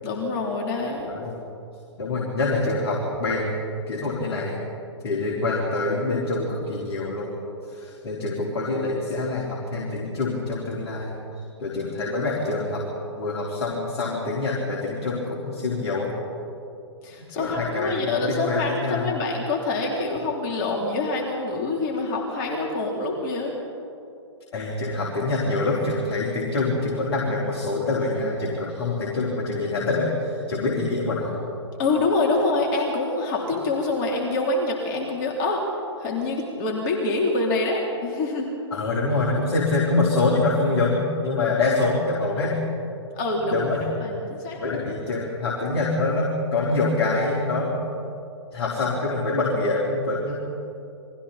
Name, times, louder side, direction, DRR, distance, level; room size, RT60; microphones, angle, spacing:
voice 1, 0.0-1.1 17.0-23.6 31.8-35.6 36.0-38.5 43.1-43.7 44.0-44.6, left 2 dB, 40° left, -1 dB, 3.8 m, -26 dB
voice 2, 1.1-1.4 2.0-3.6 3.9-4.6 5.0-7.3 7.7-11.1 11.6-12.8 13.2-16.1 17.4-19.1 24.5-31.4 38.7-42.6 43.4-43.9 44.6-47.8 48.5-50.3, left 2 dB, 60° left, -3 dB, 4.2 m, -25 dB
30.0 x 23.0 x 4.4 m, 2.7 s
hypercardioid pair, 120°, 15 cm